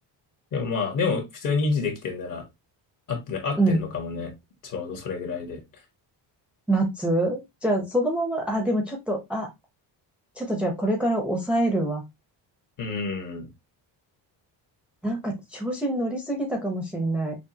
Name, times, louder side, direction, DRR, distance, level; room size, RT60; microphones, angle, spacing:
voice 1, 0.5-2.4 3.1-4.3 4.6-5.6 12.8-13.5, left 4 dB, 45° left, 4 dB, 1.5 m, -28 dB
voice 2, 6.7-9.5 10.4-12.0 15.0-17.4, right 1 dB, ahead, 0 dB, 0.8 m, -25 dB
6.0 x 2.3 x 2.8 m, 0.20 s
cardioid pair, 150°, 44 cm